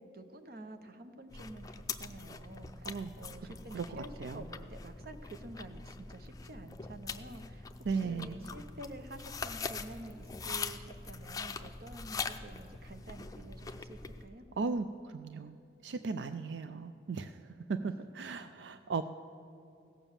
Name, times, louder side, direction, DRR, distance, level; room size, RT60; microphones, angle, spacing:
voice 1, 0.0-14.4 17.8-18.2, right 1 dB, 60° right, 8 dB, 0.9 m, -49 dB
sound 1, 1.3-14.3, left 4 dB, 20° left, 0.5 m, -43 dB
voice 2, 3.4-4.5 7.8-8.4 14.6-15.6 15.8-17.4 17.7-19.0, right 4 dB, 85° right, 11 dB, 0.4 m, -37 dB
16.5 x 7.1 x 7.1 m, 2.7 s
head